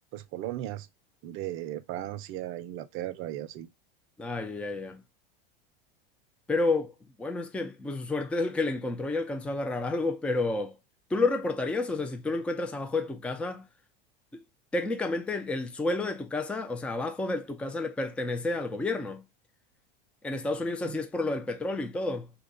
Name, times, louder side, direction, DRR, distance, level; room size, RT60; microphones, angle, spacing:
voice 1, 0.1-0.9 1.2-3.7 20.8-21.0, right 13 dB, 45° right, 0.6 m, -36 dB
voice 2, 4.2-5.0 6.5-10.8 11.1-13.7 14.3-14.4 14.7-19.2 20.2-22.3, left 2 dB, 5° left, 0.4 m, -30 dB
2.8 x 2.3 x 3.7 m
hypercardioid pair, 110°, 29 cm